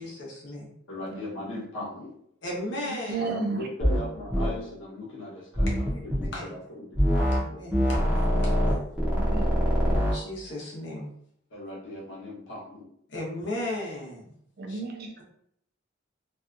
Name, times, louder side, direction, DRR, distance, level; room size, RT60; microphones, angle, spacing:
voice 1, 0.0-0.7 2.4-3.3 5.9-6.5 7.3-8.8 10.0-11.1 13.1-14.3 14.7-14.8, left 1 dB, 60° left, -3 dB, 0.8 m, -36 dB
voice 2, 0.9-2.1 3.2-7.0 11.5-12.9, left 1 dB, 80° left, -5 dB, 1.0 m, -38 dB
voice 3, 2.9-3.6 8.1-8.5 9.1-10.1 14.6-15.1, right 3 dB, 50° right, 3 dB, 0.4 m, -34 dB
sound 1, 3.8-4.0 4.3-4.5 5.6-6.3 7.0-7.4 7.7-10.2, equal, 10° right, 0.6 m, -24 dB
2.6 x 2.2 x 2.5 m, 0.69 s
head